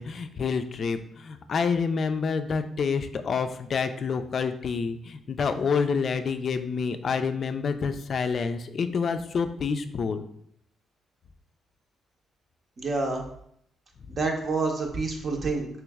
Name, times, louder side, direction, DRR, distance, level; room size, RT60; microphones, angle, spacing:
voice 1, 0.0-10.2, left 5 dB, 50° left, 9 dB, 0.3 m, -28 dB
voice 2, 12.8-13.2 14.1-15.7, right 3 dB, 45° right, 2 dB, 0.7 m, -28 dB
3.1 x 3.0 x 3.5 m, 0.70 s
cardioid pair, 90°, 0 cm